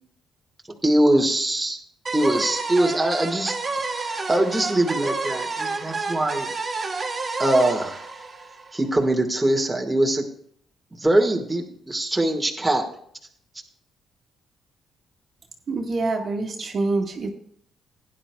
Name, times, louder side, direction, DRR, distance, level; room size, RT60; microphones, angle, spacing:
voice 1, 0.8-1.8 2.1-3.5 3.8-6.5 7.4-8.0 8.7-10.2 11.0-12.9, right 1 dB, 10° right, 1 dB, 1.6 m, -22 dB
sound 1, 2.1-9.0, right 3 dB, 35° right, 1.7 m, -30 dB
voice 2, 15.7-17.3, right 3 dB, 50° right, 2 dB, 1.6 m, -26 dB
16.5 x 10.0 x 2.3 m, 0.65 s
cardioid pair, 90°, 0 cm